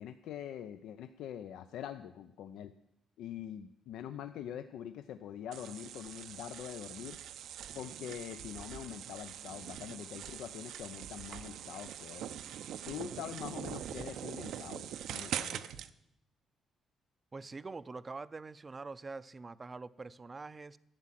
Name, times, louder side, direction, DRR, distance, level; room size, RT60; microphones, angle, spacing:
voice 1, 0.0-2.7 3.2-7.2 7.7-12.4 12.8-15.6, left 10 dB, 85° left, 10 dB, 0.5 m, -44 dB
sound 1, 5.5-15.9, right 10 dB, 75° right, 0.6 m, -43 dB
voice 2, 17.3-20.8, right 3 dB, 25° right, 16 dB, 0.4 m, -45 dB
12.0 x 8.6 x 7.4 m, 0.82 s
cardioid pair, 115°, 0 cm